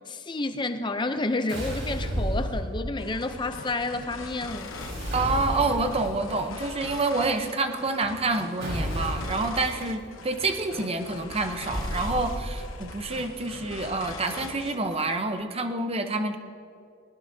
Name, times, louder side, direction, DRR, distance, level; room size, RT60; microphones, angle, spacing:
voice 1, 0.1-4.7, left 2 dB, 20° left, 9 dB, 0.6 m, -30 dB
sound 1, 1.5-3.1 4.5-6.1 8.6-9.5 11.7-12.8, equal, 60° right, 4.4 m, -31 dB
sound 2, 3.0-15.2, left 3 dB, 75° left, 1.0 m, -42 dB
voice 2, 5.1-16.4, right 3 dB, 30° right, 7 dB, 0.8 m, -28 dB
20.0 x 19.5 x 2.8 m, 2.5 s
head